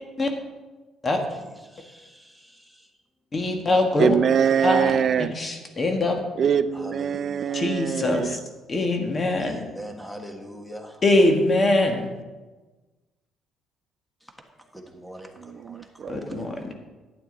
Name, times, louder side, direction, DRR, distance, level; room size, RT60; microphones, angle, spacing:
voice 1, 3.3-4.2 4.6-4.9 5.2-6.2 7.5-8.4 8.7-9.6 11.0-12.1 16.1-16.7, left 2 dB, 30° left, 1.6 m, -22 dB
voice 2, 4.0-5.4 6.4-8.4 15.4-16.5, right 8 dB, 50° right, 0.3 m, -24 dB
voice 3, 6.7-7.3 9.4-10.8 15.0-15.2, equal, ahead, 1.4 m, -39 dB
11.5 x 8.7 x 4.0 m
cardioid pair, 105°, 0 cm